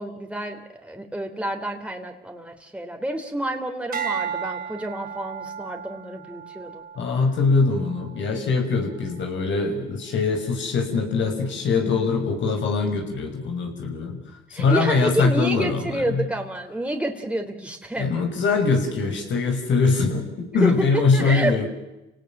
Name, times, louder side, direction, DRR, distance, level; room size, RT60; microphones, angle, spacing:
voice 1, 0.0-6.8 14.5-18.1 20.5-21.5, right 1 dB, 5° right, 3 dB, 3.4 m, -29 dB
sound 1, 3.9-8.4 8.9-9.3, right 8 dB, 50° right, 3.7 m, -34 dB
voice 2, 7.0-14.2 14.5-16.2 18.0-21.7, left 4 dB, 70° left, 4 dB, 6.3 m, -22 dB
29.5 x 18.5 x 7.3 m, 0.98 s
cardioid pair, 90°, 20 cm